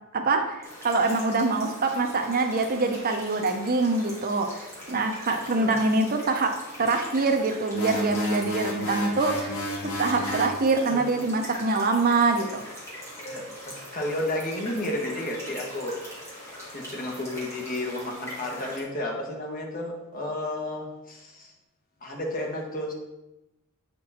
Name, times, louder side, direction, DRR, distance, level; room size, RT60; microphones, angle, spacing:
voice 1, 0.1-6.5 6.8-9.5 9.8-12.6, right 3 dB, 40° right, 5 dB, 0.7 m, -24 dB
sound 1, 0.6-18.8, equal, 10° left, 2.4 m, -42 dB
sound 2, 7.7-10.6, left 1 dB, 75° left, 1.5 m, -32 dB
voice 2, 13.2-16.0 16.7-21.5 22.0-22.9, left 1 dB, 40° left, 0 dB, 1.4 m, -32 dB
8.4 x 4.5 x 4.2 m, 0.96 s
head